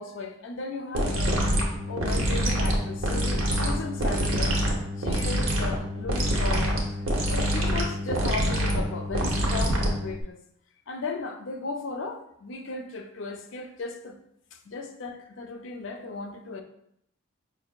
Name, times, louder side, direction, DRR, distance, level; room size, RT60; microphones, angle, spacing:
voice 1, 0.0-1.4 1.9-4.6 5.0-10.4 10.9-14.2 14.5-16.6, left 3 dB, 65° left, 0.4 m, -36 dB
sound 1, 0.9-10.2, equal, 75° right, 0.7 m, -26 dB
5.1 x 2.5 x 2.3 m
head